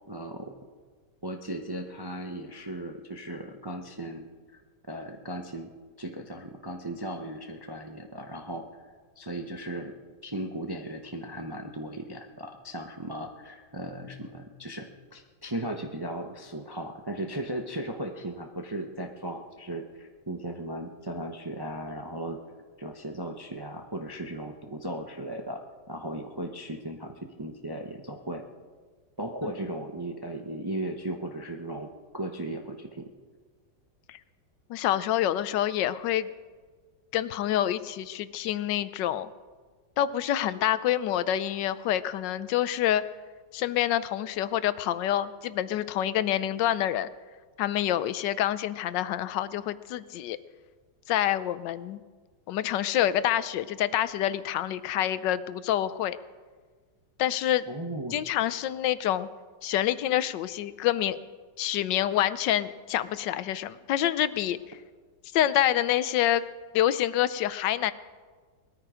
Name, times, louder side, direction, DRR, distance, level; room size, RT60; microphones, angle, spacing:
voice 1, 0.1-0.5 1.2-4.3 4.9-5.7 6.0-8.6 9.2-10.0 10.2-22.4 22.8-25.6 25.9-28.4 29.2-33.1 57.7-58.2, right 1 dB, 25° right, 3 dB, 0.4 m, -36 dB
voice 2, 34.7-36.3 37.1-39.3 40.0-43.0 43.5-47.1 47.6-50.4 51.1-52.0 52.5-56.2 57.2-57.6 58.1-59.3 59.6-61.2 61.6-64.8 65.3-66.4 66.7-67.9, left 12 dB, 80° left, 15 dB, 1.3 m, -27 dB
19.5 x 13.5 x 5.0 m, 1.5 s
omnidirectional pair, 1.9 m